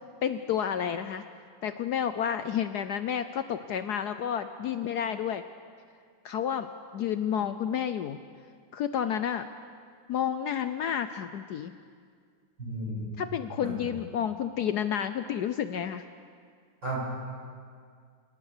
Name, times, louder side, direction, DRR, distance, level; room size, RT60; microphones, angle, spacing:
voice 1, 0.2-1.2 1.6-5.4 6.2-6.7 6.9-8.2 8.7-9.4 10.1-11.7 13.2-16.0, left 9 dB, 65° left, 10 dB, 1.1 m, -30 dB
voice 2, 12.6-13.1 13.6-13.8 16.8-17.0, right 2 dB, 70° right, -4 dB, 7.9 m, -33 dB
28.5 x 18.0 x 6.7 m, 2.1 s
omnidirectional pair, 2.0 m